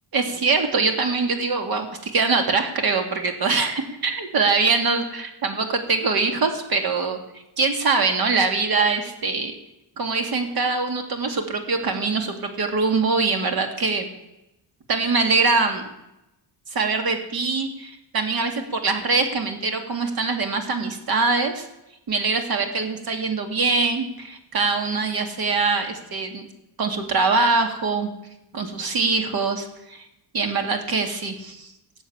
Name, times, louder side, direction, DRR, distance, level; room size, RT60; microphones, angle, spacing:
voice 1, 0.1-7.2 7.6-9.5 10.0-14.1 14.9-15.8 16.7-21.7 22.1-26.4 26.8-28.1 28.5-30.0 30.3-31.7, right 4 dB, 55° right, 5 dB, 2.4 m, -23 dB
17.0 x 7.2 x 8.7 m, 0.90 s
cardioid pair, 150°, 44 cm